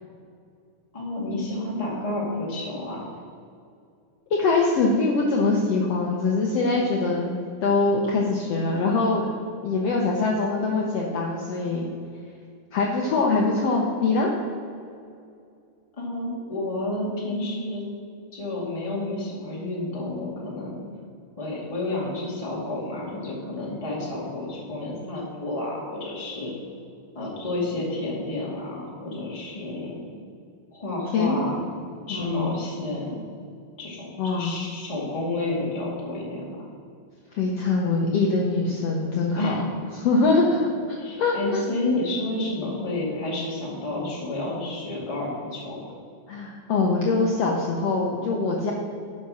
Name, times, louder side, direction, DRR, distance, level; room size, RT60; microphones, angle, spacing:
voice 1, 0.9-3.0 16.0-17.8 18.3-20.8 21.4-26.5 27.1-30.0 30.7-31.6 32.1-33.2 33.8-36.6 39.4-39.7 41.0-45.9, left 2 dB, 15° left, -4 dB, 1.6 m, -30 dB
voice 2, 4.3-7.3 7.6-9.3 9.6-11.9 12.7-14.3 31.1-31.4 32.1-32.5 34.2-34.5 37.3-39.6 39.9-40.6 41.2-41.6 46.3-48.7, left 3 dB, 65° left, -1 dB, 1.7 m, -23 dB
11.0 x 5.6 x 6.3 m, 2.4 s
omnidirectional pair, 3.8 m